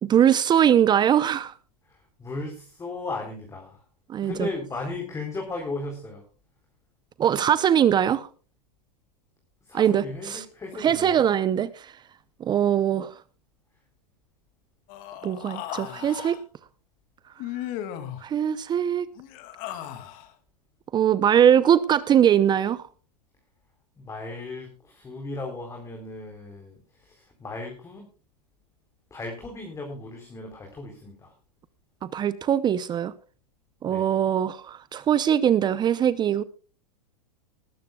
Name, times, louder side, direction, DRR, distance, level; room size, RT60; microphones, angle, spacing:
voice 1, 0.0-1.5 4.1-4.5 7.2-8.3 9.7-10.4 10.8-11.9 12.4-13.1 15.2-16.4 18.2-19.1 20.9-22.8 32.0-33.1 33.8-36.4, right 9 dB, 20° right, 0.7 m, -21 dB
voice 2, 1.9-3.8 4.2-6.2 9.6-11.3 24.0-28.1 29.1-31.3 33.8-34.2, left 2 dB, 15° left, 3.8 m, -36 dB
Human voice, 14.9-16.4 17.4-18.2 19.2-20.3, left 11 dB, 45° left, 2.5 m, -36 dB
20.0 x 13.5 x 2.3 m
hypercardioid pair, 115°, 20 cm